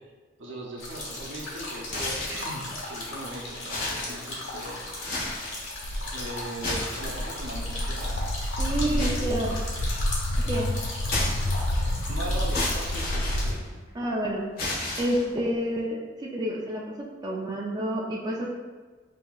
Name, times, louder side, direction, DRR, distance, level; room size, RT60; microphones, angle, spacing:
voice 1, 0.4-4.8 6.1-8.2 8.4-8.5 8.9-9.2 12.1-13.6, right 1 dB, 70° right, -1 dB, 0.7 m, -39 dB
sound 1, 0.8-13.0, left 1 dB, 90° left, 1.4 m, -36 dB
sound 2, 1.9-2.5 3.0-3.1 3.6-4.6 4.9-5.6 6.4-7.5 9.0-10.0 11.1-11.9 12.5-14.1 14.6-15.5, left 2 dB, 50° left, 1.3 m, -32 dB
Walk footsteps, 5.8-13.5, left 1 dB, 65° left, 0.4 m, -29 dB
voice 2, 8.6-9.5 10.4-10.7 13.9-14.4 15.0-16.8 17.2-18.5, right 1 dB, 20° right, -4 dB, 0.4 m, -29 dB
5.5 x 2.8 x 2.3 m, 1.4 s
head